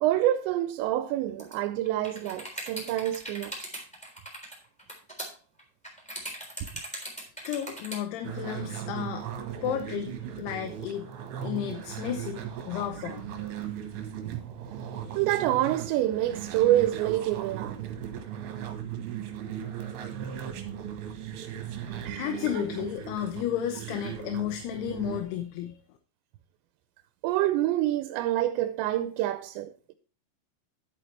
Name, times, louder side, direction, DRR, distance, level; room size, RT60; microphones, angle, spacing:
voice 1, 0.0-3.5 13.0-13.1 14.2-14.4 14.7-14.9 15.1-17.9 22.1-22.6 27.2-29.9, right 13 dB, 85° right, 2.9 m, -27 dB
sound 1, 1.4-1.5 1.8-8.0, right 1 dB, ahead, 2.7 m, -39 dB
voice 2, 7.4-9.3 9.6-11.1 11.4-13.2 22.2-25.8, left 10 dB, 75° left, 2.7 m, -33 dB
sound 2, 8.2-25.2, right 9 dB, 70° right, 3.1 m, -38 dB
11.0 x 8.5 x 3.3 m
omnidirectional pair, 5.1 m